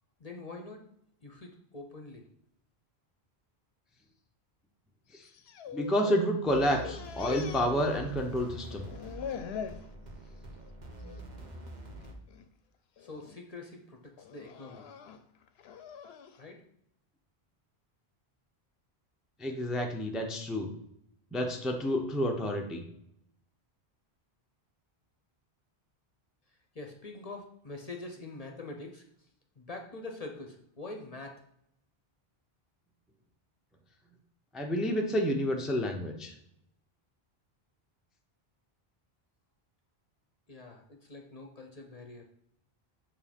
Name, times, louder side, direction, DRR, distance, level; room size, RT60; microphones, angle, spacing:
voice 1, 0.2-0.8 1.2-2.2 13.0-14.9 16.4-16.6 26.7-29.3 29.6-31.4 40.5-42.3, left 2 dB, 40° left, 2 dB, 0.8 m, -44 dB
sound 1, 5.2-6.3 6.5-8.4 8.7-9.9 10.3-10.7 11.0-11.2 12.0-12.4 13.0-13.4 14.2-16.4, left 7 dB, 80° left, 0.8 m, -43 dB
voice 2, 5.7-8.9 19.4-20.7 21.3-22.8 34.5-36.3, equal, ahead, 1 dB, 0.6 m, -29 dB
sound 2, 6.5-12.1, right 1 dB, 45° right, 1.0 m, -46 dB
7.4 x 2.8 x 5.1 m, 0.75 s
omnidirectional pair, 1.1 m